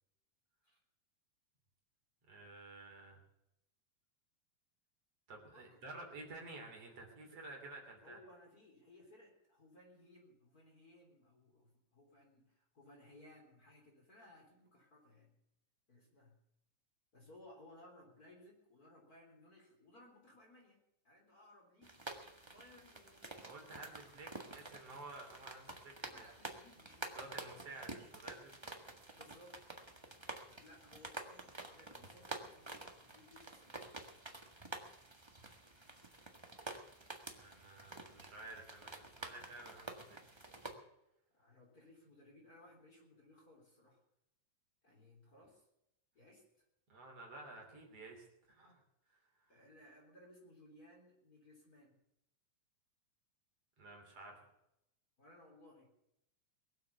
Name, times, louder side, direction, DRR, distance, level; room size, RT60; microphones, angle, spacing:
voice 1, 2.3-3.2 5.3-8.2 23.4-26.3 27.2-28.5 37.3-40.2 46.9-48.8 49.4-49.6 53.8-54.4, right 2 dB, 50° right, 1 dB, 4.0 m, -52 dB
voice 2, 8.0-15.3 15.9-16.4 17.1-22.1 22.4-23.9 26.0-27.7 29.1-29.6 30.5-33.8 41.3-44.0 44.8-45.7 46.1-46.6 49.5-52.0 55.2-55.9, left 1 dB, 25° left, 0 dB, 3.9 m, -62 dB
sound 1, 21.8-40.7, right 2 dB, 35° right, 0.4 m, -50 dB
22.5 x 7.8 x 6.9 m, 0.83 s
omnidirectional pair, 3.7 m